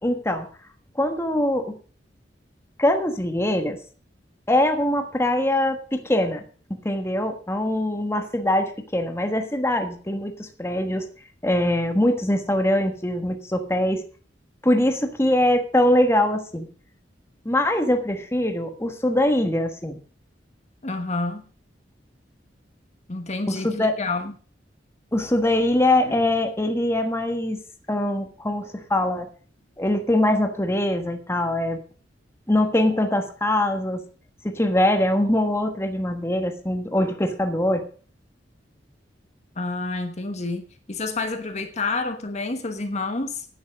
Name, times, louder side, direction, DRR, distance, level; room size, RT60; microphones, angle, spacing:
voice 1, 0.0-0.5 1.0-1.7 2.8-3.8 4.5-6.4 6.8-11.0 11.4-14.0 14.6-16.7 17.4-20.0 23.5-24.0 25.1-27.6 27.9-29.3 29.8-31.8 32.5-34.0 34.4-37.8, left 1 dB, 15° left, 1.3 m, -22 dB
voice 2, 20.8-21.4 23.1-24.3 26.1-26.2 39.6-43.5, left 3 dB, 40° left, 1.2 m, -29 dB
10.0 x 9.4 x 6.4 m
head